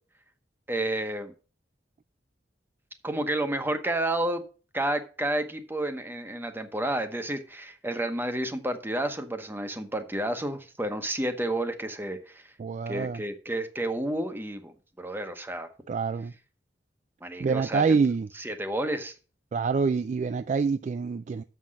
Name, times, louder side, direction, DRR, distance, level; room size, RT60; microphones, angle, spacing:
voice 1, 0.7-1.3 3.0-4.4 4.7-12.4 12.9-15.7 17.2-17.8 18.4-19.1, right 1 dB, 10° right, 0.9 m, -30 dB
voice 2, 12.6-13.2 15.9-16.3 17.4-18.3 19.5-21.4, right 5 dB, 40° right, 0.3 m, -26 dB
7.3 x 5.7 x 6.2 m
head